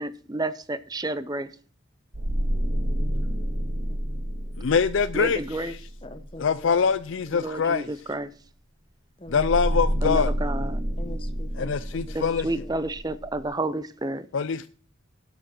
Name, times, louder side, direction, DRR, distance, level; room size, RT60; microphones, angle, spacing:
voice 1, 0.0-1.5 5.1-5.7 7.3-8.3 10.0-10.8 12.1-14.3, right 2 dB, 20° right, 0.6 m, -30 dB
sound 1, 2.1-6.5 9.3-13.4, equal, 60° right, 2.2 m, -29 dB
voice 2, 4.6-5.4 6.4-7.9 9.3-10.3 11.5-12.5 14.3-14.7, left 6 dB, 65° left, 0.4 m, -24 dB
voice 3, 6.0-6.8 7.7-7.8 9.2-9.5 11.0-11.7 12.1-12.4, left 1 dB, 25° left, 1.1 m, -42 dB
12.0 x 7.2 x 4.4 m
head